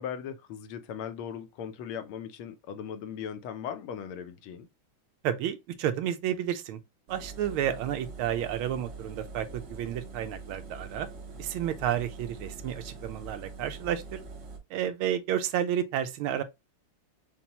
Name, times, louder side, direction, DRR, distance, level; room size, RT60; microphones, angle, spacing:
voice 1, 0.0-4.7, left 8 dB, 80° left, 1.5 m, -38 dB
voice 2, 5.2-6.8 7.1-11.1 11.4-14.2 14.7-16.4, right 10 dB, 80° right, 1.4 m, -31 dB
Engine, 7.1-14.6, right 3 dB, 60° right, 1.5 m, -44 dB
5.6 x 2.2 x 2.8 m
omnidirectional pair, 2.3 m